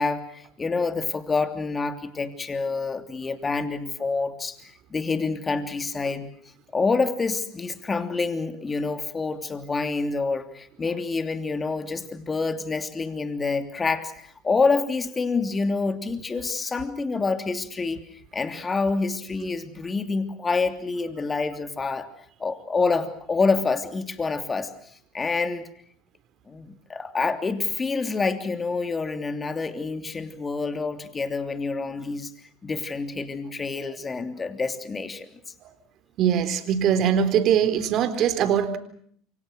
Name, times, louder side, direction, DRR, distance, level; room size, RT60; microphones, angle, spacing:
voice 1, 0.0-4.6 4.9-6.3 6.7-22.1 22.4-24.7 25.1-25.7 26.5-32.3 32.6-35.3, left 4 dB, 25° left, 9 dB, 3.1 m, -27 dB
voice 2, 36.2-38.8, right 8 dB, 55° right, 10 dB, 4.1 m, -22 dB
28.5 x 25.0 x 6.3 m, 0.63 s
hypercardioid pair, 80°, 0 cm